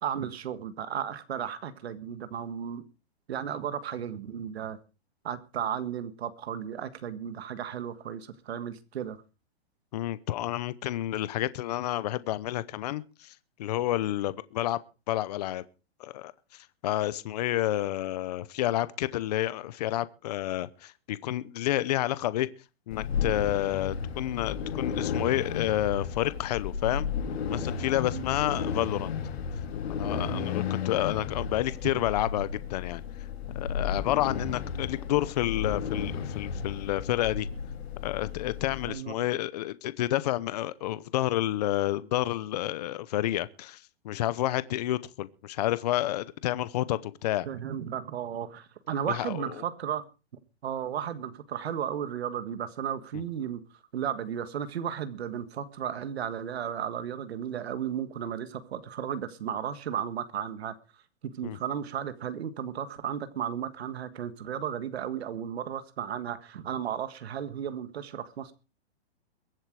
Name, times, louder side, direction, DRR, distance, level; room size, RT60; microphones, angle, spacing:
voice 1, 0.0-2.8 3.3-4.8 5.2-9.2 27.9-28.2 30.1-30.5 38.9-39.2 47.4-50.1 50.6-53.6 53.9-61.0 61.3-68.5, right 9 dB, 70° right, 1.6 m, -34 dB
voice 2, 9.9-14.8 15.1-15.6 16.0-22.5 22.9-27.1 27.5-29.1 29.9-33.0 33.5-37.5 38.0-47.5 49.1-49.3 61.4-61.6, left 14 dB, 40° left, 0.8 m, -30 dB
sound 1, 22.9-38.9, left 6 dB, 70° left, 3.2 m, -33 dB
22.5 x 7.8 x 4.7 m
hypercardioid pair, 165°, 33 cm